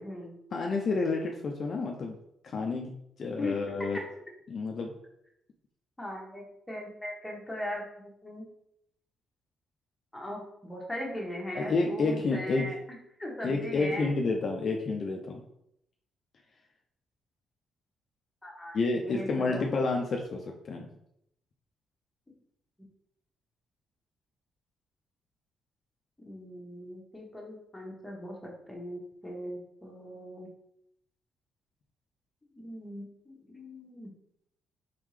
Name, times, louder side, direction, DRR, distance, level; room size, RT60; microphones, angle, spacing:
voice 1, 0.0-0.4 3.4-3.5 6.0-8.4 10.1-12.8 13.2-14.1 18.4-19.7 26.2-30.5 32.6-34.1, left 1 dB, 10° left, -1 dB, 1.2 m, -39 dB
voice 2, 0.5-2.2 2.4-4.0 4.5-4.9 11.5-12.7 13.4-15.4 18.7-20.9, left 3 dB, 50° left, 1 dB, 0.5 m, -30 dB
3.7 x 3.5 x 3.2 m, 0.77 s
cardioid pair, 90°, 0 cm